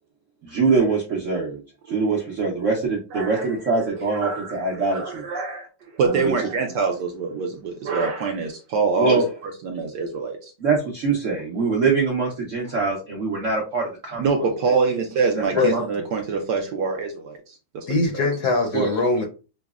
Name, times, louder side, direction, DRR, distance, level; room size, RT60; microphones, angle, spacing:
voice 1, 0.4-1.6 1.9-5.2 6.0-6.3 9.0-9.3 10.6-14.5 15.7-15.9 18.7-18.9, right 4 dB, 90° right, -2 dB, 0.6 m, -23 dB
voice 2, 3.1-3.5 3.7-5.7 5.9-9.2 9.6-10.5 14.2-18.3, right 4 dB, 70° right, 3 dB, 1.0 m, -25 dB
voice 3, 17.9-19.2, left 3 dB, 70° left, 2 dB, 0.9 m, -21 dB
5.7 x 2.0 x 2.3 m, 0.33 s
omnidirectional pair, 2.4 m